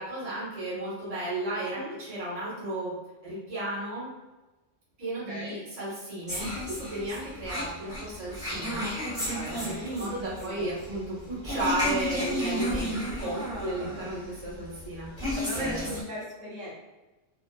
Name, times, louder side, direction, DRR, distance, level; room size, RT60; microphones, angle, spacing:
voice 1, 0.0-2.9 3.2-4.1 5.0-8.9 9.5-15.1 15.5-15.9, right 1 dB, 35° right, -8 dB, 1.0 m, -34 dB
voice 2, 1.6-1.9 5.3-5.6 9.2-10.1 10.4-10.7 13.2-14.1 15.3-16.7, right 1 dB, 85° right, -6 dB, 1.2 m, -38 dB
sound 1, 6.3-16.0, left 1 dB, 5° right, 0.6 m, -33 dB
2.6 x 2.4 x 2.2 m, 1.1 s
omnidirectional pair, 1.3 m